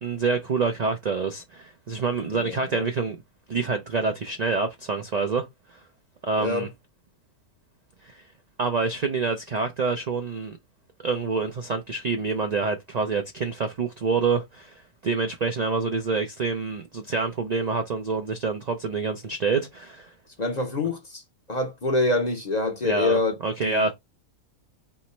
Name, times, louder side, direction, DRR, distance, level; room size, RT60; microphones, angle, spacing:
voice 1, 0.0-3.2 3.5-5.5 6.2-6.7 8.0-8.2 8.6-10.6 11.0-20.1 22.8-23.9, right 4 dB, 70° right, 0.4 m, -27 dB
voice 2, 2.3-2.9 6.4-6.7 20.4-21.2 21.5-23.3 23.6-23.9, left 2 dB, 40° left, 0.7 m, -26 dB
3.4 x 3.0 x 4.3 m
omnidirectional pair, 1.5 m